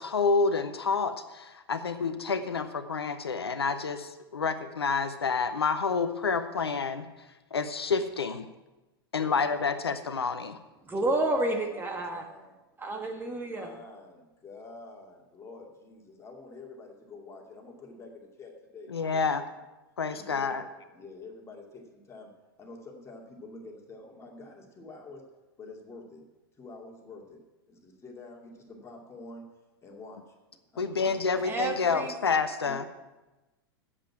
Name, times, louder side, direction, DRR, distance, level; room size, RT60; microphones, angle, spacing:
voice 1, 0.0-7.1 7.5-8.5 9.1-10.6 18.9-19.4 20.0-20.6 30.8-32.9, left 5 dB, 90° left, 10 dB, 0.7 m, -28 dB
voice 2, 9.2-10.0 11.1-12.5 13.5-19.5 20.1-22.3 22.6-25.2 25.6-26.2 26.6-27.4 27.7-29.4 29.8-30.3 30.7-31.4 32.6-32.8, left 3 dB, 20° left, 0 dB, 2.5 m, -47 dB
voice 3, 10.8-12.3 12.8-13.7 31.4-32.1, right 1 dB, 15° right, 4 dB, 1.5 m, -30 dB
8.1 x 7.6 x 8.7 m, 1.1 s
hypercardioid pair, 95°, 13 cm